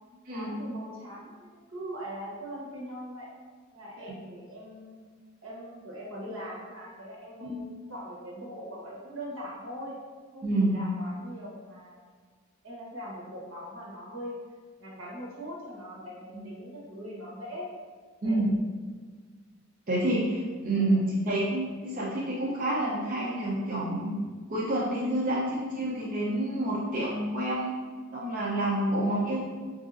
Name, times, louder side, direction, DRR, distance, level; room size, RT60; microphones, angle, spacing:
voice 1, 0.3-3.3 3.7-5.0 5.4-9.9 10.3-12.0 12.6-14.4 14.8-17.7 18.2-18.4 20.7-21.0 25.3-25.4, equal, 70° right, -4 dB, 1.0 m, -41 dB
voice 2, 10.4-10.8 16.3-16.4 18.2-18.5 19.9-24.2 24.5-27.7 28.1-29.4, right 1 dB, 40° right, -6 dB, 0.6 m, -28 dB
4.8 x 2.6 x 2.5 m, 1.5 s
head